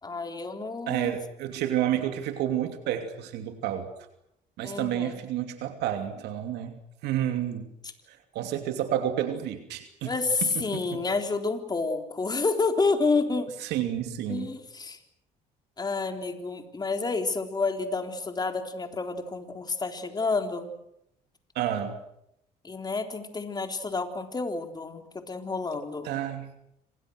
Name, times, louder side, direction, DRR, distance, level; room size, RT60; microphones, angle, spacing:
voice 1, 0.0-1.2 4.6-5.2 10.0-13.5 14.3-15.0 15.8-20.7 22.6-26.1, left 3 dB, 25° left, 5 dB, 3.9 m, -29 dB
voice 2, 0.9-3.9 4.6-7.7 8.3-10.1 10.5-11.0 13.6-14.5 21.5-22.0 26.0-26.5, right 11 dB, 85° right, 6 dB, 2.9 m, -30 dB
28.0 x 26.5 x 6.5 m, 0.77 s
cardioid pair, 110°, 17 cm